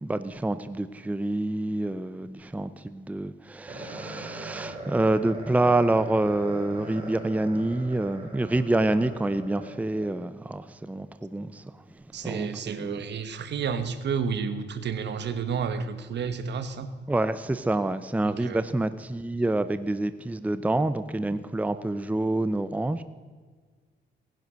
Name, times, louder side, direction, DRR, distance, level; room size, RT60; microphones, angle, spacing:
voice 1, 0.0-11.6 12.1-13.0 17.1-23.0, right 2 dB, 5° right, 12 dB, 0.7 m, -27 dB
sound 1, 3.7-10.1, right 2 dB, 25° right, 5.2 m, -40 dB
voice 2, 12.1-16.9 18.2-18.6, right 6 dB, 60° right, 11 dB, 1.4 m, -31 dB
18.5 x 10.5 x 6.4 m, 1.5 s
cardioid pair, 90°, 20 cm